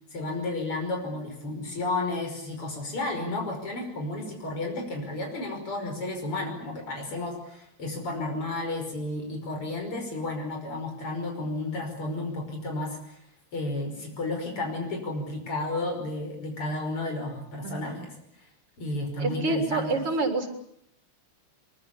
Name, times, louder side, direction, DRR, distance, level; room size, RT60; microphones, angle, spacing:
voice 1, 0.1-13.2 13.5-18.1 18.4-18.5 18.8-20.0, left 2 dB, 80° left, 3 dB, 6.6 m, -32 dB
voice 2, 17.6-18.0 19.2-20.5, right 3 dB, 85° right, 5 dB, 4.7 m, -28 dB
23.5 x 23.5 x 8.6 m, 0.70 s
omnidirectional pair, 2.4 m